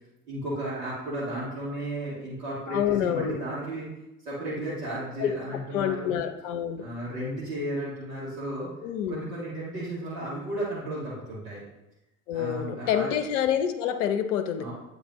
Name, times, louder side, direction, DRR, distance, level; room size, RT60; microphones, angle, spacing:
voice 1, 0.3-3.9 4.2-6.1 6.8-8.7 9.1-11.6 12.3-13.1 14.6-14.7, right 1 dB, 65° right, -8 dB, 1.9 m, -34 dB
voice 2, 2.7-3.4 5.2-5.3 5.7-6.8 8.8-9.2 12.3-14.7, left 9 dB, 60° left, 8 dB, 0.7 m, -27 dB
8.7 x 3.9 x 3.0 m, 0.96 s
figure-of-eight pair, 60°, 42 cm